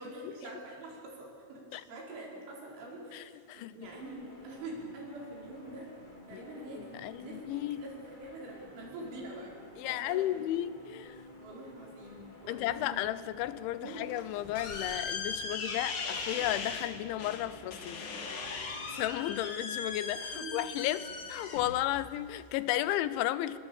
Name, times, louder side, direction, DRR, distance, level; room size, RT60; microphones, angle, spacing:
voice 1, 0.0-5.9 6.3-10.4 11.2-13.0 13.8-14.0 20.3-20.9, right 1 dB, 80° right, -1 dB, 7.2 m, -45 dB
voice 2, 3.1-3.7 6.3-6.4 6.8-7.8 9.8-11.2 12.5-18.1 18.9-21.0 21.3-23.6, left 14 dB, 85° left, 15 dB, 3.1 m, -34 dB
sound 1, 3.8-19.1, left 1 dB, 15° left, 1.6 m, -53 dB
sound 2, 13.9-23.0, left 4 dB, 50° left, 1.6 m, -39 dB
27.5 x 21.0 x 7.1 m, 2.2 s
omnidirectional pair, 5.4 m